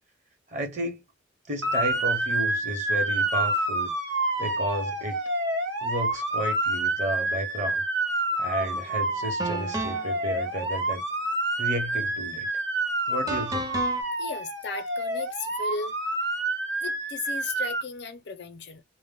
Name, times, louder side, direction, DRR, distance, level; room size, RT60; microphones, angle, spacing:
voice 1, 0.5-1.0 1.5-3.9 4.4-5.2 5.8-7.8 8.4-11.0 11.6-12.5 13.1-13.7, equal, 40° right, 0.9 m, -32 dB
Motor vehicle (road) / Siren, 1.6-17.8, right 2 dB, 75° right, 0.9 m, -28 dB
sound 1, 8.6-8.8 9.4-10.2 13.3-14.0, right 2 dB, 20° right, 0.5 m, -32 dB
voice 2, 14.2-16.0 16.8-18.8, left 4 dB, 65° left, 0.5 m, -36 dB
2.1 x 2.1 x 3.5 m
head